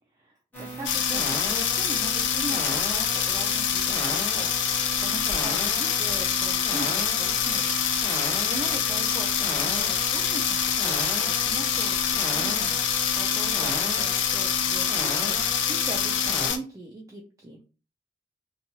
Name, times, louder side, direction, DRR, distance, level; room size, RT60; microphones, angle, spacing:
voice 1, 0.2-7.7 8.3-17.6, right 2 dB, 15° right, 0 dB, 0.4 m, -40 dB
sound 1, 0.5-16.5, right 1 dB, 10° left, 0.9 m, -35 dB
sound 2, 0.8-16.6, left 8 dB, 65° left, 0.4 m, -25 dB
2.9 x 2.3 x 2.7 m, 0.34 s
head